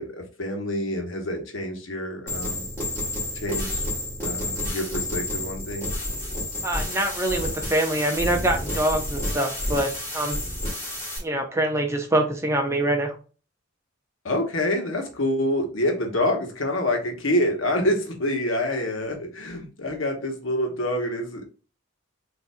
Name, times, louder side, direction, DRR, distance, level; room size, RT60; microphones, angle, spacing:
voice 1, 0.0-2.7 3.3-3.8 4.2-5.9 14.2-21.6, left 1 dB, 70° left, 3 dB, 1.1 m, -27 dB
sound 1, 2.3-11.2, left 1 dB, 10° left, 2.0 m, -30 dB
voice 2, 6.6-10.4 11.2-13.2, right 1 dB, 15° right, 3 dB, 0.6 m, -25 dB
6.8 x 2.6 x 2.2 m, 0.37 s
head